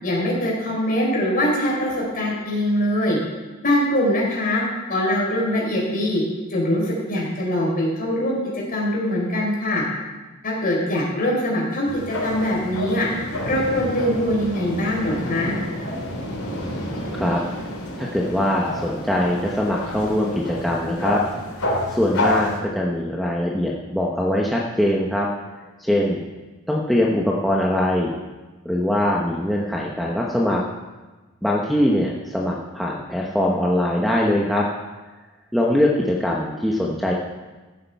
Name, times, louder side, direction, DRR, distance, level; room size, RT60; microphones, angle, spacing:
voice 1, 0.0-3.2 3.6-4.6 4.9-6.2 6.5-9.8 10.4-13.1 13.4-15.6, left 1 dB, 45° left, -2 dB, 4.1 m, -22 dB
sound 1, 11.8-22.6, left 1 dB, 80° left, 3.4 m, -29 dB
voice 2, 18.0-21.2 21.9-25.3 25.8-26.2 26.7-28.1 28.6-30.6 31.4-34.7 35.5-37.1, left 1 dB, ahead, -4 dB, 1.0 m, -22 dB
14.5 x 8.4 x 4.7 m, 1.2 s
head